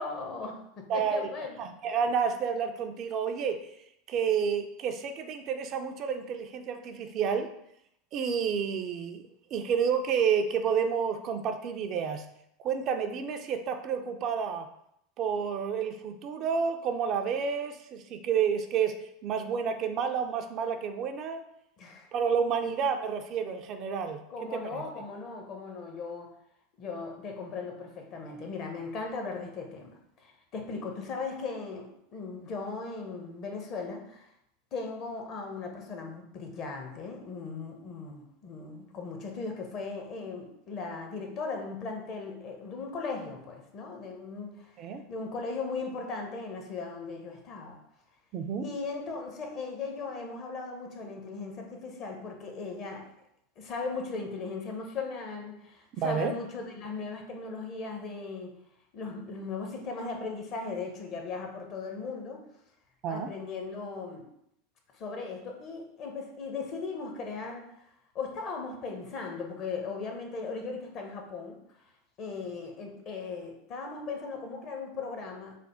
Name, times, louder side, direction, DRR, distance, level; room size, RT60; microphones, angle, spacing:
voice 1, 0.0-1.6 21.8-22.1 24.3-26.3 26.8-34.3 34.7-44.8 45.1-47.8 48.6-53.1 53.6-58.6 58.9-62.4 63.1-64.3 64.9-67.7 68.1-71.6 72.2-75.6, left 4 dB, 45° left, 3 dB, 0.7 m, -38 dB
voice 2, 0.9-1.3 1.6-3.7 4.1-7.5 8.1-9.2 9.5-12.3 12.6-14.7 15.2-21.4 22.1-24.2 24.5-24.8 44.8-45.0 48.3-48.7 56.0-56.3 63.0-63.3, right 6 dB, 45° right, 6 dB, 0.3 m, -30 dB
3.3 x 2.1 x 4.2 m, 0.75 s
figure-of-eight pair, 80°, 0 cm